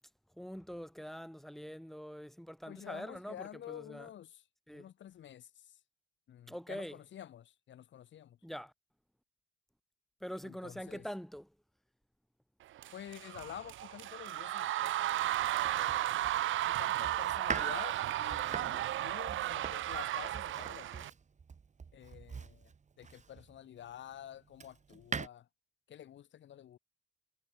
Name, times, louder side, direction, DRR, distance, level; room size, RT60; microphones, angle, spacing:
voice 1, 0.4-4.1 4.7-4.9 6.5-7.0 8.4-8.7 10.2-11.5, equal, ahead, 5.6 m, -44 dB
voice 2, 2.7-4.4 4.7-5.8 6.3-8.4 10.4-11.0 12.9-15.3 15.6-16.1 16.6-21.1 21.9-22.7 23.0-25.5 25.9-26.8, left 11 dB, 70° left, 4.0 m, -49 dB
sound 1, 12.8-21.1, right 13 dB, 75° right, 1.4 m, -34 dB
Domestic sounds home sounds, 15.4-23.6 24.1-25.3, right 5 dB, 35° right, 2.5 m, -44 dB
cardioid pair, 90°, 20 cm